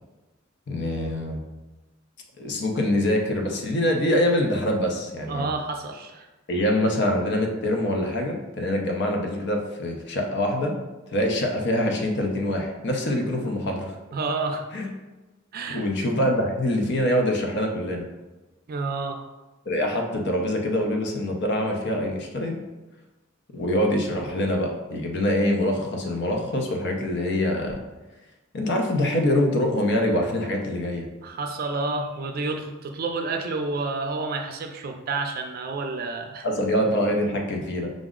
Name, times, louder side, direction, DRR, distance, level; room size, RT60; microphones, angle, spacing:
voice 1, 0.7-1.4 2.4-5.5 6.5-10.7 11.1-13.9 14.7-14.9 15.7-18.1 19.7-22.6 23.5-27.8 28.5-31.1 36.4-37.9, left 1 dB, 60° left, 2 dB, 0.6 m, -24 dB
voice 2, 5.3-6.3 14.1-14.6 15.5-15.8 18.7-19.2 31.2-36.5, right 3 dB, 45° right, 4 dB, 0.4 m, -29 dB
5.1 x 2.0 x 3.6 m, 1.1 s
head